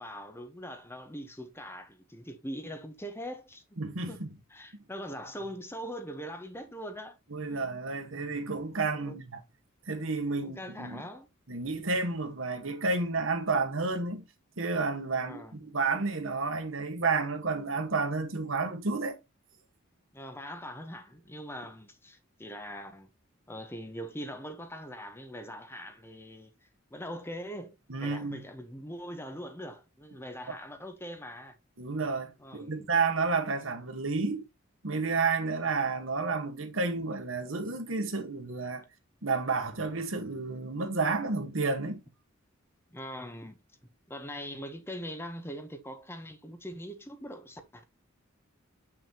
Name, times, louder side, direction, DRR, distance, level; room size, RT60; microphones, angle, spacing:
voice 1, 0.0-4.2 4.5-7.2 7.5-7.7 8.1-8.2 8.9-9.2 10.4-11.3 15.1-15.6 20.1-23.1 23.5-26.5 26.9-31.6 32.4-32.9 42.9-43.6 44.1-47.8, equal, 10° left, 0.9 m, -42 dB
voice 2, 3.8-4.3 7.3-9.4 9.9-11.0 11.5-14.2 14.6-19.2 27.9-28.4 31.8-34.4 34.8-38.8 39.2-42.0, right 4 dB, 70° right, 1.4 m, -31 dB
7.1 x 6.0 x 2.9 m
head